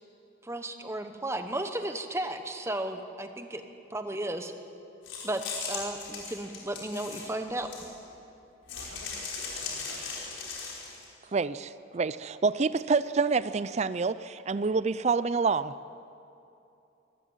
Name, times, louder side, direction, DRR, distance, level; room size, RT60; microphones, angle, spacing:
voice 1, 0.4-3.6 3.9-4.5 5.2-5.4 5.7-7.9, right 1 dB, 15° right, 7 dB, 1.0 m, -34 dB
sound 1, 5.0-8.1 8.7-11.0, left 4 dB, 70° left, 4.9 m, -38 dB
voice 2, 8.7-10.3, left 3 dB, 85° left, 3 dB, 2.4 m, -51 dB
voice 3, 11.3-15.7, right 4 dB, 35° right, 16 dB, 0.4 m, -27 dB
23.0 x 15.0 x 8.1 m, 2.8 s
head